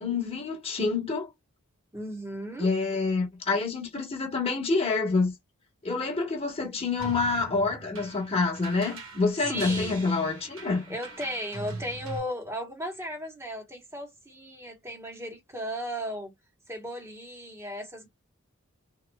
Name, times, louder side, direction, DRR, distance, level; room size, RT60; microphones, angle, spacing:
voice 1, 0.0-1.3 2.6-5.3 5.8-10.9, left 4 dB, 25° left, 1.1 m, -27 dB
voice 2, 1.9-2.7 9.4-10.0 10.9-16.3 16.7-18.1, equal, 10° right, 1.1 m, -36 dB
sound 1, 7.0-12.2, right 3 dB, 70° right, 1.5 m, -41 dB
3.6 x 3.0 x 2.2 m
head